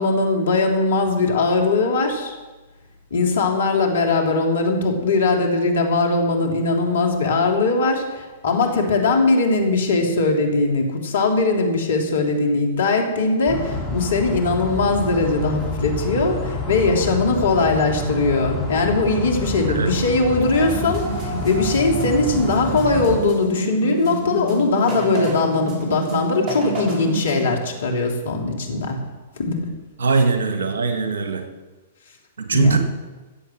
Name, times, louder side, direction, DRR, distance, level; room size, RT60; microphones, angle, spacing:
voice 1, 0.0-2.3 3.1-29.0 29.4-29.6 32.5-32.8, left 3 dB, 65° left, 2 dB, 3.1 m, -20 dB
sound 1, 13.5-23.2, left 1 dB, 10° left, 4.7 m, -28 dB
sound 2, 20.5-27.5, right 2 dB, 25° right, 6.0 m, -29 dB
voice 2, 30.0-31.4 32.5-32.8, right 4 dB, 70° right, 6 dB, 2.0 m, -20 dB
15.0 x 8.0 x 7.6 m, 1.2 s
figure-of-eight pair, 110°, 0 cm